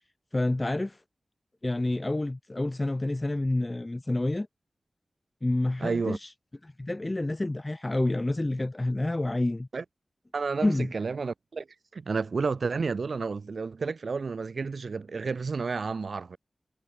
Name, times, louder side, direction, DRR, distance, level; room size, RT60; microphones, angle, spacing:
voice 1, 0.3-1.0 1.6-4.5 5.4-6.3 6.6-9.7 10.6-10.9, left 2 dB, 30° left, 2.5 m, -28 dB
voice 2, 5.8-6.2 9.7-9.8 10.3-11.7 11.9-16.4, right 4 dB, 75° right, 1.7 m, -31 dB
cardioid pair, 55°, 0 cm